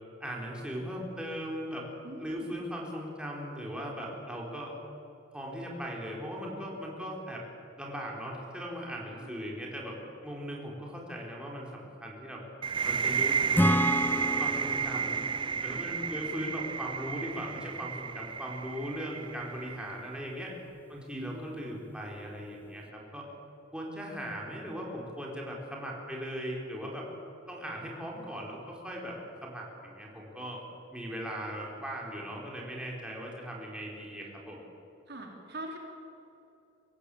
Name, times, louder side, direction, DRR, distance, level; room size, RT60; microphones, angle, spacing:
voice 1, 0.2-1.8 2.2-4.7 5.3-7.4 7.8-9.9 10.2-12.4 12.8-13.9 14.4-15.3 15.6-20.5 20.9-23.3 23.7-27.1 27.5-29.2 29.4-30.6 30.9-34.6, equal, 5° right, -2 dB, 4.4 m, -39 dB
voice 2, 2.0-2.5 9.1-9.4 15.7-15.8 21.1-21.7 35.1-35.8, right 1 dB, 55° right, 1 dB, 3.4 m, -43 dB
sound 1, 12.6-20.2, right 6 dB, 25° right, 0.5 m, -32 dB
Acoustic guitar / Strum, 13.5-17.1, equal, 10° left, 0.7 m, -31 dB
25.0 x 17.0 x 8.6 m, 2.9 s
head